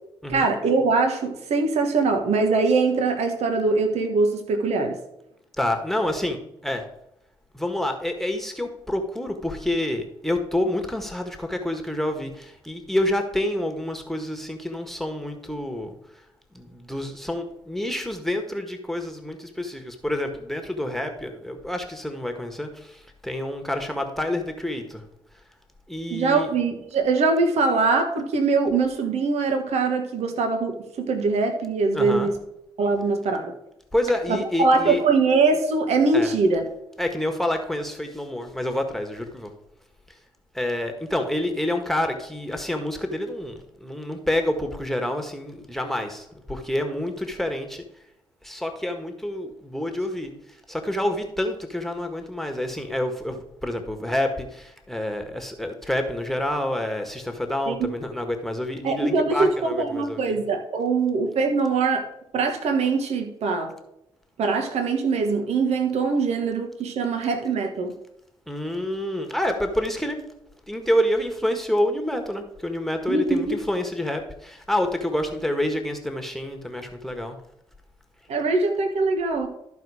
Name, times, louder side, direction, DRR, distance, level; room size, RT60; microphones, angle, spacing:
voice 1, 0.3-5.0 26.1-32.3 32.8-33.5 34.3-36.7 57.7-57.9 58.8-62.1 62.3-63.7 64.4-67.9 73.1-73.5 78.3-79.5, right 4 dB, 65° right, 5 dB, 1.3 m, -22 dB
voice 2, 5.6-6.9 7.5-15.9 16.5-25.0 25.9-26.5 31.9-32.3 33.9-35.0 36.1-36.3 37.0-39.5 40.5-47.8 48.4-60.4 68.5-70.2 70.7-77.4, left 1 dB, ahead, 4 dB, 1.6 m, -28 dB
13.0 x 4.5 x 4.9 m, 0.82 s
hypercardioid pair, 45°, 12 cm